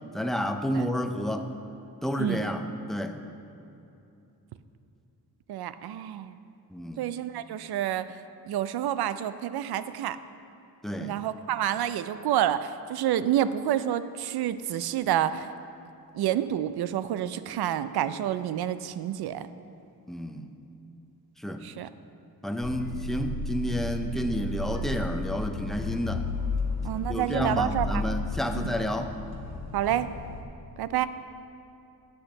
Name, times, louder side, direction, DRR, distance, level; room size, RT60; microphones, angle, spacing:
voice 1, 0.1-1.5 2.0-3.2 6.7-7.0 10.8-11.1 20.1-20.5 21.4-21.6 22.4-26.3 27.1-29.1, equal, ahead, 6 dB, 0.4 m, -30 dB
voice 2, 2.2-2.5 5.5-6.3 7.0-8.1 8.5-10.2 11.0-15.5 16.1-19.5 21.6-21.9 26.8-28.0 28.5-28.7 29.7-30.1 30.8-31.1, right 11 dB, 80° right, 13 dB, 0.5 m, -28 dB
sound 1, 22.6-30.4, left 2 dB, 80° left, 1.0 m, -33 dB
8.0 x 6.5 x 7.0 m, 2.8 s
wide cardioid pair, 145°, 37 cm